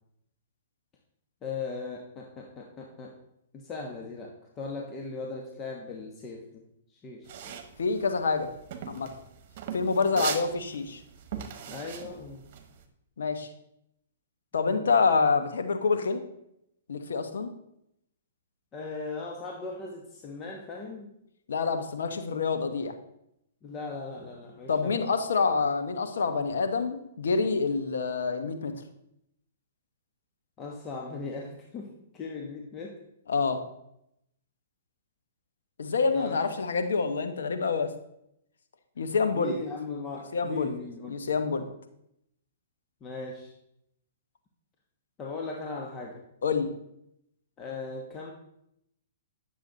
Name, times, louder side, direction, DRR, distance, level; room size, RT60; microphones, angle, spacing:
voice 1, 1.4-3.1 3.5-6.6 6.9-7.5 11.7-12.4 14.7-14.9 18.7-21.1 23.6-25.1 30.6-33.0 36.1-36.4 39.3-41.2 43.0-43.5 45.2-46.2 47.6-48.3, left 4 dB, 25° left, 0 dB, 1.3 m, -38 dB
sound 1, 7.3-12.8, right 8 dB, 50° right, 1.2 m, -39 dB
voice 2, 7.8-8.5 8.9-9.1 9.7-11.0 13.2-13.5 14.5-16.2 16.9-17.5 21.5-22.9 24.7-28.7 33.3-33.6 35.8-37.9 39.0-39.5 40.3-40.7 41.1-41.6 46.4-46.7, left 4 dB, 75° left, 7 dB, 1.1 m, -27 dB
9.9 x 7.0 x 4.0 m, 0.79 s
hypercardioid pair, 120°, 0 cm